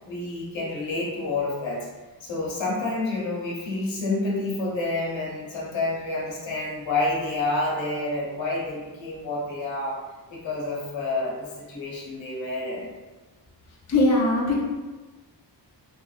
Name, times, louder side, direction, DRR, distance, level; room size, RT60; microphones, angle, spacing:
voice 1, 0.0-1.9 2.2-10.0 10.3-12.9, left 2 dB, 90° left, -4 dB, 0.9 m, -29 dB
voice 2, 13.9-14.6, left 2 dB, 40° left, -4 dB, 0.6 m, -20 dB
2.9 x 2.6 x 2.4 m, 1.2 s
wide cardioid pair, 155°, 44 cm